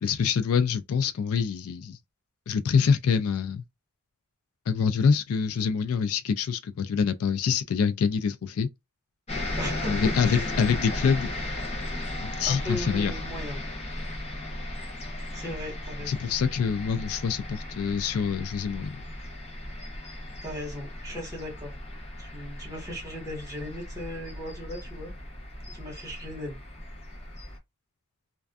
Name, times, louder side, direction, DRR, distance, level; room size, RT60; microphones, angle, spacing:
voice 1, 0.0-2.0 2.5-3.6 4.7-8.7 9.9-11.3 12.2-13.1 16.1-19.0, left 6 dB, 70° left, 0.4 m, -25 dB
sound 1, 9.3-27.6, left 1 dB, 30° left, 0.7 m, -36 dB
voice 2, 9.6-10.5 12.5-13.6 15.3-16.2 20.4-21.7 22.2-25.1 25.7-26.6, left 1 dB, 15° right, 1.3 m, -37 dB
2.5 x 2.3 x 2.3 m
head